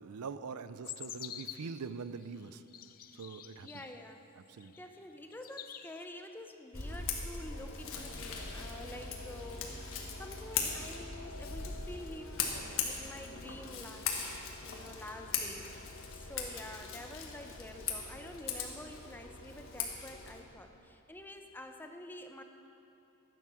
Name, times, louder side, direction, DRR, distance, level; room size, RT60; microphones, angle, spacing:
voice 1, 0.0-2.6 3.1-3.7 4.5-4.8, right 5 dB, 90° right, 13 dB, 0.5 m, -43 dB
sound 1, 0.8-1.8 2.4-4.0 4.6-5.0 5.3-6.0, left 11 dB, 40° left, 0.4 m, -47 dB
voice 2, 3.6-4.2 4.8-9.9 10.2-14.2 14.6-15.7 16.1-22.4, left 1 dB, 10° left, 5 dB, 0.7 m, -48 dB
Scissors, 6.7-20.4, left 5 dB, 60° left, 1.5 m, -40 dB
14.0 x 9.2 x 6.2 m, 2.7 s
head